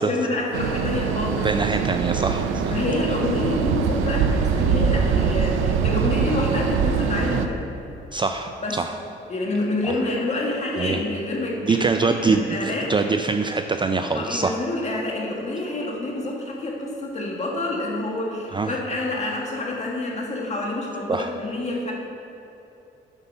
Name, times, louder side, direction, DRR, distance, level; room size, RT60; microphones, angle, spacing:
voice 1, 0.0-1.5 2.7-7.6 8.6-8.8 9.3-12.9 14.1-21.9, left 2 dB, 35° left, -2 dB, 1.9 m, -27 dB
sound 1, 0.5-7.5, right 6 dB, 90° right, 0.5 m, -23 dB
voice 2, 1.4-2.8 8.1-9.0 10.8-11.0 11.6-14.5 18.5-18.7 21.1-21.3, right 4 dB, 25° right, 6 dB, 0.4 m, -24 dB
8.1 x 5.4 x 5.5 m, 2.9 s
cardioid pair, 90°, 20 cm